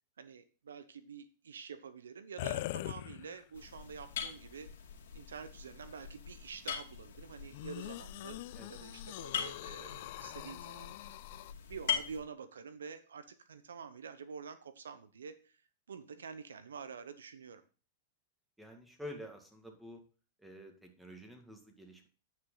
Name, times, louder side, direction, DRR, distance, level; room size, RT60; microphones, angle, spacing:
voice 1, 0.2-4.7 5.1-8.4 8.7-11.0 11.6-15.5 15.9-17.6, right 6 dB, 85° right, 12 dB, 0.8 m, -48 dB
sound 1, 2.4-3.6 4.3-4.4 7.5-11.5, left 17 dB, 60° left, 0.3 m, -43 dB
sound 2, 3.5-12.2, left 8 dB, 75° left, 2.4 m, -42 dB
voice 2, 18.6-20.0 20.4-22.1, left 1 dB, 5° right, 3 dB, 2.0 m, -49 dB
9.5 x 5.9 x 3.9 m, 0.36 s
hypercardioid pair, 115°, 0 cm